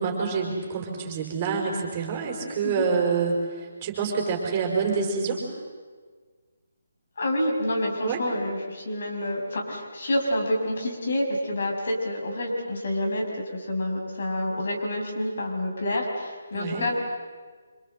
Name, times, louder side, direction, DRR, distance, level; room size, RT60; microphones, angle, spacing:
voice 1, 0.0-5.4 8.0-8.2 16.5-16.8, right 5 dB, 25° right, 1 dB, 5.3 m, -27 dB
voice 2, 7.2-13.2 13.5-16.9, left 1 dB, 50° left, 0 dB, 6.1 m, -28 dB
27.5 x 26.5 x 7.9 m, 1.5 s
figure-of-eight pair, 145°, 0 cm